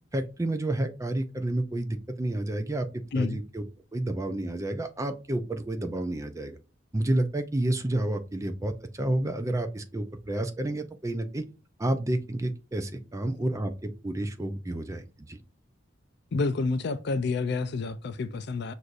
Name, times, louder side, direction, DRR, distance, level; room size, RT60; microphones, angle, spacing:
voice 1, 0.1-3.6 3.9-6.6 6.9-11.4 11.8-15.4, right 1 dB, 15° right, 0.4 m, -30 dB
voice 2, 16.3-18.7, left 3 dB, 55° left, 0.4 m, -29 dB
6.2 x 2.6 x 2.4 m
head